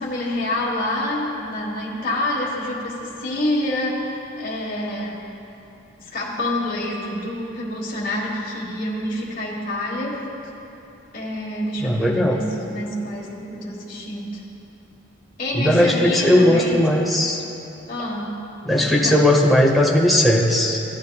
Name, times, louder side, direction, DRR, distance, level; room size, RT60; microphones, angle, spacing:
voice 1, 0.0-5.2 6.0-10.2 11.1-14.4 15.4-16.8 17.9-18.4 18.8-19.3, left 1 dB, 45° left, -5 dB, 1.3 m, -27 dB
voice 2, 11.8-12.4 15.5-17.4 18.6-20.8, left 1 dB, ahead, -1 dB, 0.9 m, -17 dB
15.0 x 9.2 x 2.3 m, 2.9 s
head